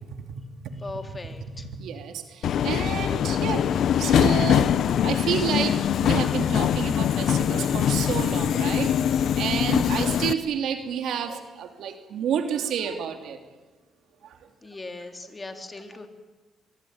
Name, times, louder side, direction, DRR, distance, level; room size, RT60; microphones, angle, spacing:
voice 1, 0.0-1.0 1.6-3.7 4.0-4.7 5.0-13.4 14.2-14.4, right 8 dB, 75° right, 6 dB, 2.9 m, -30 dB
voice 2, 0.8-1.7 14.6-16.1, left 2 dB, 25° left, 5 dB, 3.7 m, -39 dB
Subway metro underground, 2.4-10.3, left 9 dB, 70° left, 1.0 m, -23 dB
24.5 x 23.5 x 9.6 m, 1.2 s
cardioid pair, 90°, 0 cm